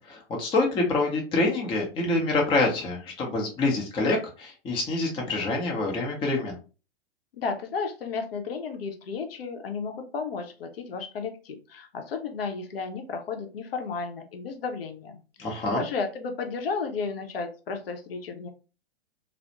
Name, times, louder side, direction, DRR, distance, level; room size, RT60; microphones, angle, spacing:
voice 1, 0.1-6.6 15.4-15.8, left 2 dB, 15° left, -1 dB, 0.6 m, -26 dB
voice 2, 7.3-18.5, left 5 dB, 65° left, 5 dB, 0.7 m, -33 dB
2.3 x 2.0 x 2.8 m, 0.33 s
figure-of-eight pair, 110°, 32 cm